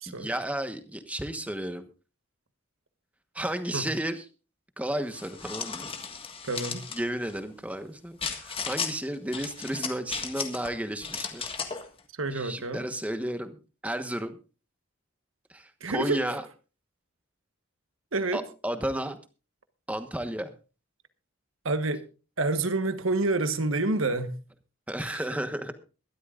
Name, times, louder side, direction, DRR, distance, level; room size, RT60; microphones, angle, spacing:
voice 1, 0.0-1.9 3.3-4.2 4.8-5.9 6.9-11.5 12.3-14.4 15.5-16.4 18.3-19.2 19.9-20.5 24.9-25.8, right 1 dB, 5° right, 1.2 m, -33 dB
sound 1, 5.1-7.0 8.2-8.9 9.3-10.7 11.0-11.9, left 6 dB, 25° left, 1.6 m, -35 dB
voice 2, 6.4-6.9 12.2-12.8 15.8-16.2 18.1-18.4 21.6-22.0 22.4-24.4 25.0-25.2, right 2 dB, 75° right, 1.3 m, -28 dB
22.5 x 12.5 x 2.5 m
head